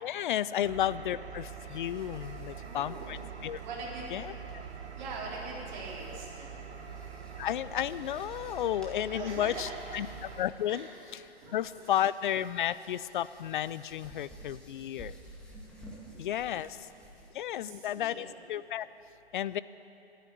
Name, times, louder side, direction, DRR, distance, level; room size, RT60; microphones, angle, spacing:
voice 1, 0.0-3.6 4.1-4.3 7.4-10.1 10.4-11.2 11.5-15.1 16.2-16.8 17.3-18.9 19.3-19.6, left 11 dB, 50° left, 16 dB, 0.5 m, -32 dB
Engine, 0.6-10.4, right 6 dB, 90° right, 1.4 m, -44 dB
sound 1, 1.6-17.3, right 1 dB, 5° left, 2.1 m, -55 dB
voice 2, 2.6-3.2 3.6-4.1 5.0-6.5 9.1-9.9 10.7-10.9 11.4-12.0 15.9-16.6 17.1-17.2 17.5-18.3, right 3 dB, 45° right, -3 dB, 4.0 m, -43 dB
12.0 x 10.0 x 10.0 m, 2.8 s
hypercardioid pair, 140°, 32 cm